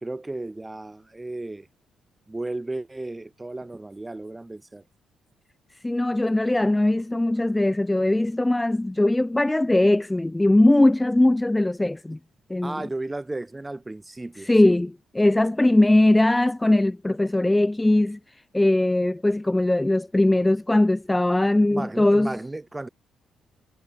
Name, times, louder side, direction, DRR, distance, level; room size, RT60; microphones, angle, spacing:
voice 1, 0.0-1.7 2.3-4.8 12.6-14.8 21.7-22.9, right 2 dB, 15° right, 1.5 m, -34 dB
voice 2, 5.8-12.2 12.5-12.9 14.4-18.2 18.5-22.3, left 1 dB, 10° left, 0.3 m, -20 dB
cardioid pair, 90°, 0 cm